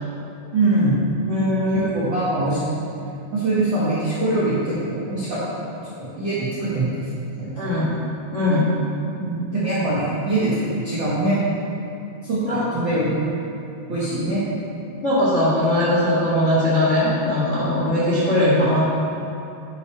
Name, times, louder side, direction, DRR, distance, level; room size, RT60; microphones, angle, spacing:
voice 1, 0.5-1.0 1.7-2.6 3.3-5.7 6.0-7.0 7.4-7.7 9.2-11.4 12.2-13.3 13.9-14.4, right 2 dB, 60° right, -11 dB, 1.2 m, -23 dB
voice 2, 1.3-2.0 7.6-7.9 8.3-8.7 12.4-12.7 15.0-18.8, left 1 dB, 55° left, -10 dB, 0.8 m, -20 dB
10.5 x 5.7 x 4.8 m, 2.8 s
omnidirectional pair, 5.2 m